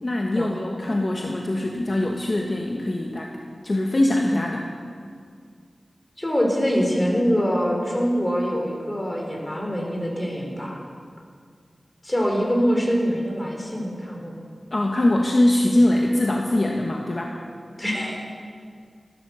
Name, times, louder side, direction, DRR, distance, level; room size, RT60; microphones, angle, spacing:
voice 1, 0.0-3.3 3.6-4.7 14.7-17.3, left 1 dB, 45° left, 0 dB, 1.2 m, -22 dB
voice 2, 6.2-10.8 12.0-14.5 17.8-18.2, equal, 15° left, -1 dB, 3.7 m, -24 dB
15.0 x 11.5 x 6.9 m, 2.1 s
wide cardioid pair, 80°, 0 cm